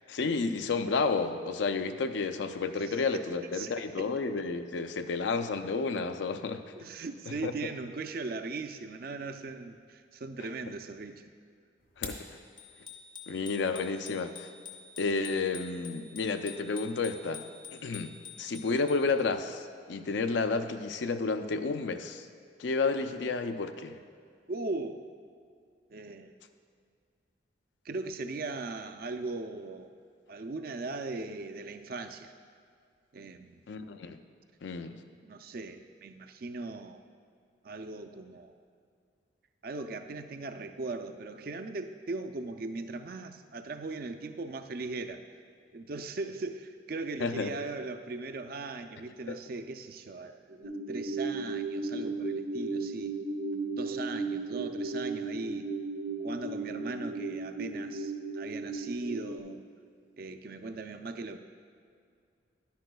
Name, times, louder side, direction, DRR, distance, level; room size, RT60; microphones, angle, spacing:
voice 1, 0.1-6.6 7.4-7.5 12.0-12.2 13.3-14.5 15.0-17.4 17.7-22.3 22.6-24.0 33.7-34.2 34.6-35.0 47.2-47.6 49.3-49.4, left 4 dB, 80° left, 9 dB, 0.5 m, -31 dB
voice 2, 2.8-3.2 3.5-4.1 6.7-11.3 24.5-25.0 25.9-26.3 27.8-29.9 30.3-32.3 33.1-33.7 34.9-37.0 37.6-38.5 39.6-45.2 45.7-53.1 53.7-55.7 56.2-59.6 60.2-61.4, right 3 dB, 55° right, 7 dB, 0.4 m, -39 dB
sound 1, 11.8-12.3, left 5 dB, 65° left, 1.1 m, -40 dB
Bicycle bell, 12.6-19.2, left 6 dB, 25° left, 0.6 m, -48 dB
sound 2, 50.6-59.4, right 3 dB, 85° right, 0.9 m, -35 dB
11.0 x 10.5 x 2.3 m, 2.3 s
head